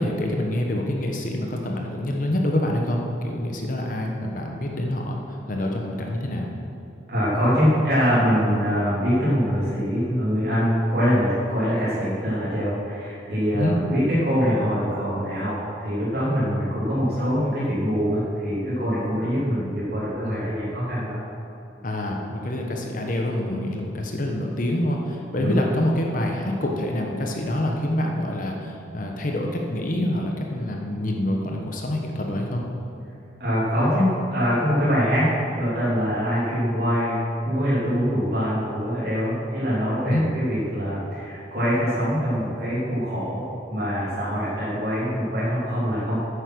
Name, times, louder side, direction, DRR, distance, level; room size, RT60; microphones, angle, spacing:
voice 1, 0.0-5.2 5.5-6.5 13.5-13.7 20.3-20.4 21.8-32.6 40.1-40.3, left 1 dB, 45° left, 1 dB, 1.1 m, -26 dB
voice 2, 7.1-15.5 15.8-21.2 25.4-25.6 33.4-46.2, equal, 55° right, -10 dB, 2.9 m, -24 dB
9.6 x 8.8 x 6.2 m, 2.8 s
head